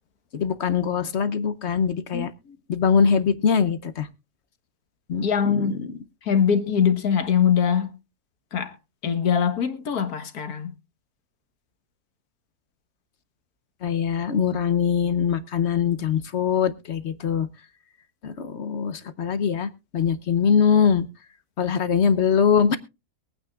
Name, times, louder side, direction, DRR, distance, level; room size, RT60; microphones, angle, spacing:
voice 1, 0.3-2.3 2.7-4.1 5.1-5.9 13.8-17.5 18.2-21.1 21.6-22.8, left 7 dB, 55° left, 0.9 m, -22 dB
voice 2, 2.1-2.6 5.2-5.8 6.2-8.0 8.5-8.7 9.0-10.7, left 7 dB, 80° left, 1.8 m, -23 dB
22.5 x 9.1 x 2.4 m
omnidirectional pair, 1.6 m